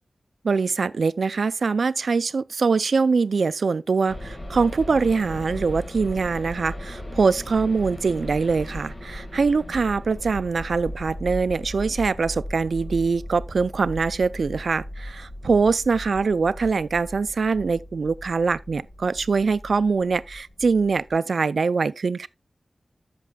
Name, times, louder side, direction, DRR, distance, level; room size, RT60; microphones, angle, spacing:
voice 1, 0.4-22.3, right 4 dB, 85° right, 0.4 m, -23 dB
sound 1, 4.1-21.2, left 1 dB, 40° left, 1.7 m, -37 dB
14.0 x 6.0 x 2.3 m
wide cardioid pair, 80°, 0 cm